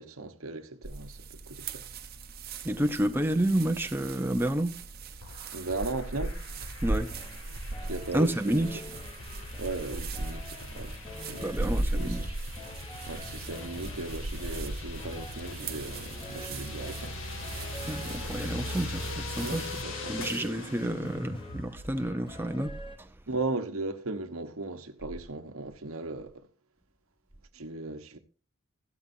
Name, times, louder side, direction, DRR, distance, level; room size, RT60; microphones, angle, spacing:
voice 1, 0.0-1.8 5.5-6.4 7.9-8.6 9.6-10.9 11.3-12.3 13.1-17.1 19.4-20.3 23.3-26.5 27.5-28.2, right 2 dB, 80° right, 1.2 m, -37 dB
sound 1, 0.8-19.8, right 2 dB, 45° right, 1.0 m, -38 dB
voice 2, 2.6-4.8 6.8-7.1 8.1-8.8 11.4-12.4 17.8-19.8 20.1-23.1, right 1 dB, 10° right, 0.6 m, -30 dB
sound 2, 5.2-22.1, left 2 dB, 65° left, 2.2 m, -41 dB
sound 3, 7.1-23.0, left 1 dB, 25° left, 2.7 m, -48 dB
15.5 x 12.0 x 2.7 m
head